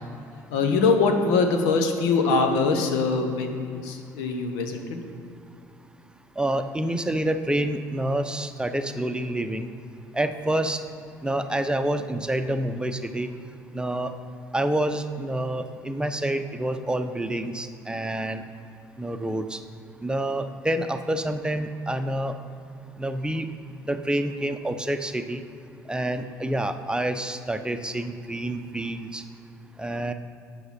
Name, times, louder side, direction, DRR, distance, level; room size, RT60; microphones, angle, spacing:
voice 1, 0.5-5.0, left 4 dB, 70° left, 5 dB, 1.4 m, -23 dB
voice 2, 6.4-9.7 10.1-10.8 11.2-13.3 13.7-14.1 14.5-18.4 19.0-19.6 20.0-22.3 23.0-23.5 23.9-25.4 25.9-29.2 29.8-30.1, right 1 dB, 10° right, 7 dB, 0.9 m, -27 dB
12.5 x 9.0 x 4.4 m, 2.6 s
hypercardioid pair, 55°, 10 cm